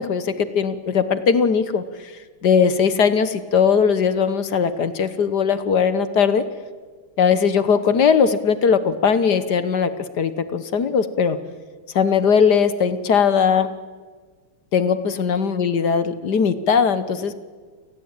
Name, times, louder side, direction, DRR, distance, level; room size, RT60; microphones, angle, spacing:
voice 1, 0.0-2.1 2.4-6.4 7.2-11.4 11.9-13.7 14.7-17.4, left 6 dB, 55° left, 13 dB, 1.6 m, -19 dB
29.0 x 18.5 x 8.9 m, 1.5 s
omnidirectional pair, 2.3 m